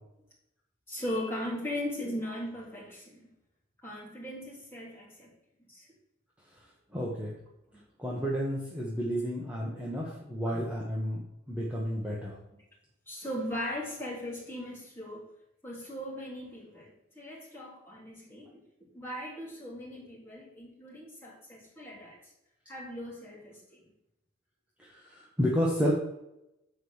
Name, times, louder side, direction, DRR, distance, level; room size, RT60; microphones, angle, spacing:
voice 1, 0.9-3.3 3.8-5.3 5.7-5.9 9.6-10.1 10.5-10.6 13.1-15.3 15.6-22.2 22.7-23.8, left 1 dB, 10° left, -6 dB, 3.4 m, -39 dB
voice 2, 6.9-7.4 8.0-12.4 24.8-25.9, equal, 5° right, -5 dB, 1.2 m, -31 dB
7.6 x 5.0 x 6.4 m, 0.89 s
head